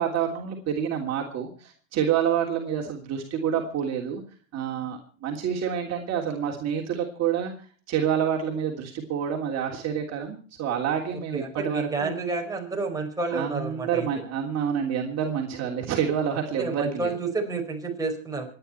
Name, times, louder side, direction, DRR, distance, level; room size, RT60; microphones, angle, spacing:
voice 1, 0.0-4.2 4.5-7.5 7.9-12.2 13.3-17.1, right 8 dB, 40° right, 0 dB, 3.3 m, -28 dB
voice 2, 11.3-14.1 16.6-18.5, right 3 dB, 10° right, 0 dB, 5.2 m, -30 dB
26.5 x 10.5 x 4.5 m, 0.42 s
supercardioid pair, 110°, 39 cm